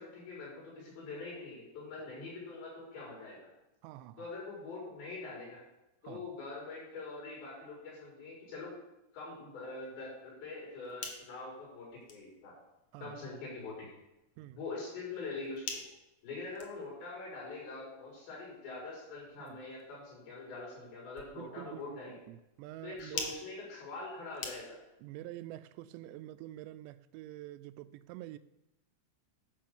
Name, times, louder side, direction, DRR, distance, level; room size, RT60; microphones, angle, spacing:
voice 1, 0.0-3.5 4.2-5.6 6.0-8.7 9.1-12.6 13.0-13.9 14.6-15.8 16.2-22.2 22.8-24.8, left 3 dB, 80° left, 7.5 m, -44 dB
voice 2, 3.8-4.3 6.0-6.3 12.9-13.2 14.4-14.6 19.4-19.6 21.3-23.4 25.0-28.4, right 14 dB, 90° right, 2.8 m, -47 dB
sound 1, 10.6-25.0, left 5 dB, 60° left, 2.1 m, -49 dB
12.5 x 5.4 x 7.2 m
omnidirectional pair, 4.9 m